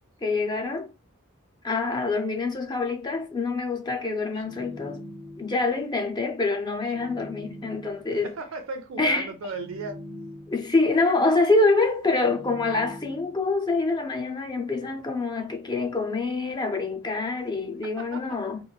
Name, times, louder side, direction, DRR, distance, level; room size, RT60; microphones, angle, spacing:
voice 1, 0.2-0.9 1.6-5.0 5.4-8.3 9.0-9.3 10.5-18.6, left 3 dB, 20° left, 0.4 m, -25 dB
sound 1, 4.3-5.7 6.8-8.2 9.4-10.8 12.1-13.5, left 1 dB, 45° left, 0.8 m, -43 dB
voice 2, 8.1-10.0 17.8-18.4, right 3 dB, 70° right, 0.5 m, -36 dB
3.0 x 2.5 x 2.2 m
head